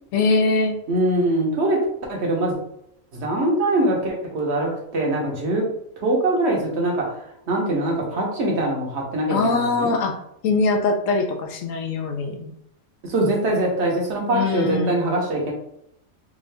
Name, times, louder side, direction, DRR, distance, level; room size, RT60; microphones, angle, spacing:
voice 1, 0.1-0.8 9.3-10.1 10.4-12.5 14.3-15.1, left 3 dB, 75° left, 4 dB, 1.0 m, -22 dB
voice 2, 0.9-2.6 3.1-5.7 6.0-7.1 7.5-10.0 13.0-15.5, right 1 dB, 60° right, 0 dB, 1.1 m, -23 dB
3.6 x 2.5 x 3.3 m, 0.77 s
omnidirectional pair, 1.4 m